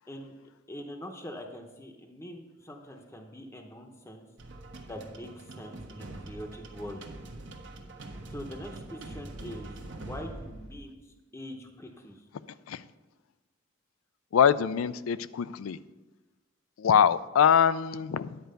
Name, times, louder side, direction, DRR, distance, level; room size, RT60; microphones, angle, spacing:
voice 1, 0.7-4.3 4.8-7.1 8.3-12.2, equal, 15° left, 3 dB, 0.7 m, -43 dB
sound 1, 4.4-10.9, right 2 dB, 60° right, 1.1 m, -44 dB
voice 2, 14.3-15.8 16.8-18.4, left 8 dB, 90° left, 15 dB, 0.4 m, -23 dB
10.5 x 4.6 x 6.5 m, 1.1 s
head